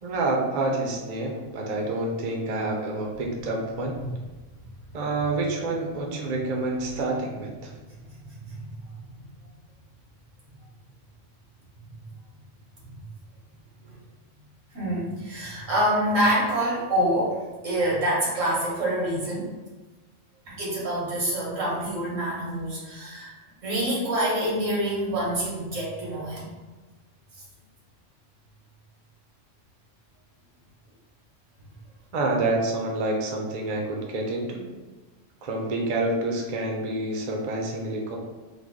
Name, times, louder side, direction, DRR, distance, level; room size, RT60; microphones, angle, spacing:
voice 1, 0.0-4.0 4.9-7.7 32.1-34.7 35.4-38.2, right 2 dB, 50° right, 0 dB, 0.5 m, -28 dB
voice 2, 8.4-8.8 14.7-19.5 20.5-23.3 23.6-26.6, right 1 dB, 90° right, -5 dB, 1.5 m, -26 dB
3.3 x 2.1 x 3.5 m, 1.2 s
omnidirectional pair, 1.3 m